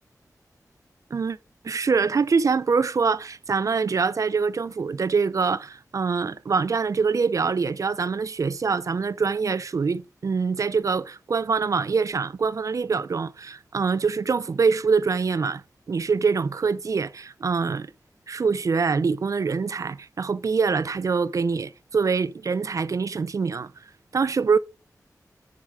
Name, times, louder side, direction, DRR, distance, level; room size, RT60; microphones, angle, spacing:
voice 1, 1.6-15.6 15.9-17.9 18.3-23.7 24.1-24.6, right 5 dB, 55° right, 0.4 m, -24 dB
9.5 x 4.8 x 3.6 m
wide cardioid pair, 105°, 7 cm